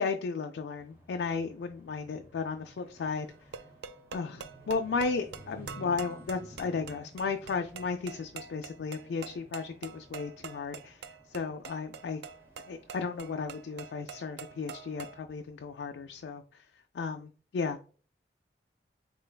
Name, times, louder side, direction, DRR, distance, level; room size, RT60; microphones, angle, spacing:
voice 1, 0.0-3.3 4.1-11.0 11.3-12.2 12.7-16.6 16.9-17.8, left 4 dB, 80° left, 5 dB, 0.3 m, -34 dB
sound 1, 0.8-16.3, equal, 15° right, 0.9 m, -55 dB
sound 2, 3.3-15.2, right 6 dB, 75° right, 0.3 m, -46 dB
3.8 x 3.3 x 2.2 m, 0.39 s
head